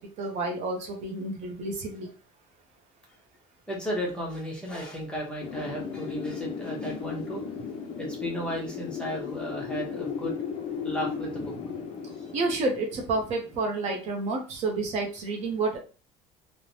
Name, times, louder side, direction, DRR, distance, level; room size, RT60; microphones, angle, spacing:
voice 1, 0.0-2.1 12.3-15.8, right 3 dB, 45° right, 2 dB, 0.6 m, -30 dB
voice 2, 3.7-7.4 8.0-10.3 10.8-11.5 12.2-12.3, equal, 5° left, -3 dB, 0.7 m, -34 dB
Wind, 5.4-14.1, left 6 dB, 40° left, 0.4 m, -36 dB
3.1 x 2.0 x 2.7 m, 0.34 s
cardioid pair, 160°, 15 cm